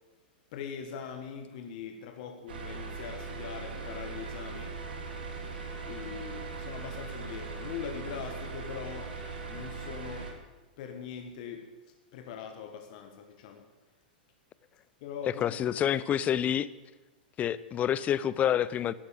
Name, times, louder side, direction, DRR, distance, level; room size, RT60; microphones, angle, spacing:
voice 1, 0.5-4.8 5.9-9.2 9.5-10.3 10.8-11.7 12.1-13.6 15.0-15.8, left 7 dB, 55° left, 5 dB, 1.7 m, -41 dB
sound 1, 2.5-10.3, right 4 dB, 80° right, 3.2 m, -39 dB
voice 2, 15.3-16.7 17.4-18.9, left 10 dB, 30° left, 18 dB, 0.7 m, -28 dB
13.0 x 9.5 x 9.1 m, 1.1 s
hypercardioid pair, 110°, 5 cm